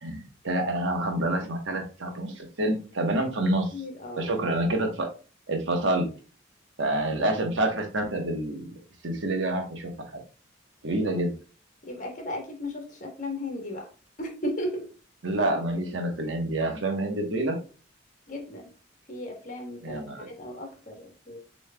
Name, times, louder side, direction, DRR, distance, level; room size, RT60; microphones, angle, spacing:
voice 1, 0.0-3.6 4.2-5.1 5.5-6.1 6.8-8.7 9.0-9.9 10.8-11.3 15.2-17.6 19.8-20.3, right 1 dB, 75° right, 3 dB, 1.1 m, -27 dB
voice 2, 3.4-4.3 10.9-11.2 11.8-13.9 14.2-14.9 18.3-18.7 19.1-21.4, left 1 dB, 40° left, 2 dB, 1.2 m, -36 dB
6.9 x 3.1 x 2.2 m, 0.35 s
head